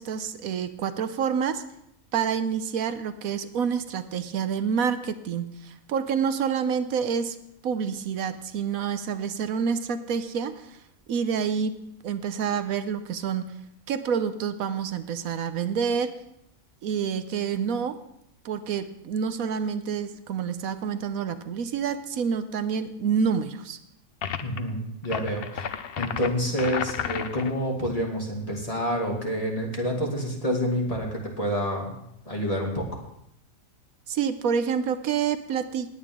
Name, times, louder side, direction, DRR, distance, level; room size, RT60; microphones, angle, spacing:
voice 1, 0.0-1.6 2.1-7.4 7.6-10.8 11.1-11.8 12.0-13.5 13.9-16.2 16.8-18.0 18.4-23.8 34.1-35.9, right 7 dB, 80° right, 11 dB, 1.2 m, -28 dB
sound 1, 24.2-24.6 25.0-27.6, left 8 dB, 55° left, 0.7 m, -32 dB
voice 2, 24.4-25.7 26.0-31.9 32.3-33.0, equal, 25° left, -1 dB, 2.5 m, -28 dB
19.5 x 8.8 x 3.7 m, 0.75 s
omnidirectional pair, 1.5 m